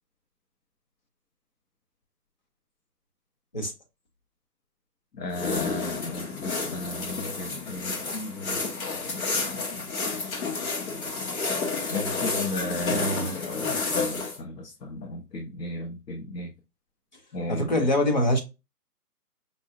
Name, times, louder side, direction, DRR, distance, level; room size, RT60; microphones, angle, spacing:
voice 1, 5.2-8.6 11.9-13.3 13.9-16.5 17.3-17.9, left 2 dB, 85° left, 0.9 m, -35 dB
sound 1, 5.3-14.4, left 4 dB, 60° left, 1.3 m, -30 dB
voice 2, 12.9-13.8 17.5-18.4, left 1 dB, 30° left, 0.5 m, -25 dB
5.2 x 2.1 x 2.4 m
hypercardioid pair, 155°, 47 cm